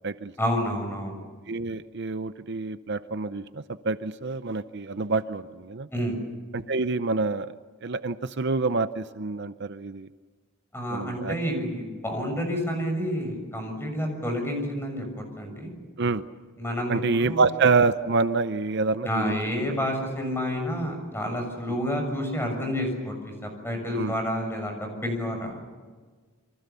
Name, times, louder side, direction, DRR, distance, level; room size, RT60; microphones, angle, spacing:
voice 1, 0.4-1.2 5.9-6.2 10.7-15.0 15.4-15.7 16.6-17.4 19.1-25.6, equal, 10° left, 4 dB, 6.5 m, -29 dB
voice 2, 1.5-5.9 6.5-7.5 7.8-10.1 10.9-11.3 16.0-16.2 16.9-19.3 19.6-19.8 21.7-21.8 23.9-24.2, right 4 dB, 55° right, 11 dB, 0.7 m, -27 dB
28.5 x 25.0 x 7.0 m, 1.5 s
head